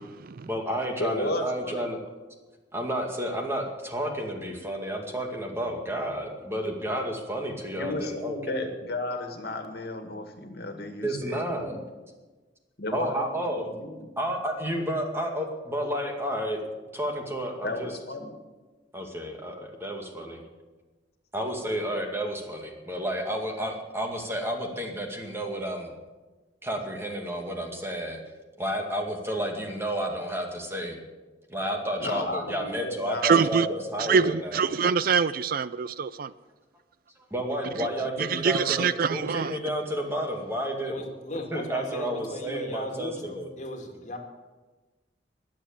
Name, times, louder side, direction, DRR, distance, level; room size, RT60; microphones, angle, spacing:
voice 1, 0.5-2.0 2.7-8.7 11.0-11.8 12.9-13.6 14.2-16.6 16.9-17.9 18.9-20.4 21.3-25.9 26.6-28.2 28.6-31.0 31.5-34.6 37.3-41.1 41.5-43.5, equal, 15° right, 2.2 m, -31 dB
voice 2, 1.0-2.1 7.7-11.8 12.8-14.1 17.6-18.4 32.0-33.3 33.6-34.3, left 2 dB, 65° left, 2.0 m, -34 dB
voice 3, 33.2-33.7 34.0-36.3 38.2-39.6, right 6 dB, 55° right, 0.4 m, -24 dB
voice 4, 40.8-44.2, left 1 dB, 45° left, 2.4 m, -37 dB
21.0 x 7.5 x 7.2 m
head